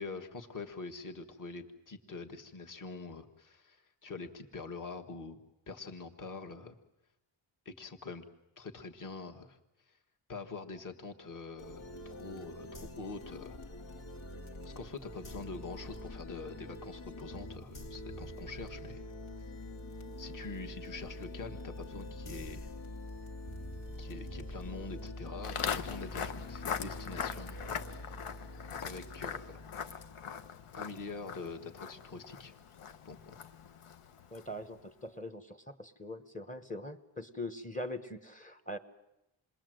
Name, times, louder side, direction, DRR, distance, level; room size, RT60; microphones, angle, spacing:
voice 1, 0.0-5.4 5.7-6.7 7.6-8.2 8.6-9.6 9.9-10.0 10.3-13.6 14.6-19.0 20.2-22.7 24.0-28.1 28.8-29.6 30.7-32.5 33.0-33.3, left 4 dB, 40° left, 4 dB, 1.5 m, -45 dB
sound 1, 11.6-30.8, left 1 dB, 75° left, 2.2 m, -45 dB
sound 2, 15.4-15.9 16.9-17.0 17.3-19.0 21.1-21.2 21.5-22.7 23.4-25.1, right 3 dB, 55° left, 1.8 m, -53 dB
Walk footsteps, 25.4-34.7, left 7 dB, 90° left, 1.1 m, -41 dB
voice 2, 34.3-38.8, left 1 dB, 15° left, 10 dB, 1.0 m, -42 dB
27.5 x 21.0 x 7.7 m, 0.89 s
wide cardioid pair, 165°, 50 cm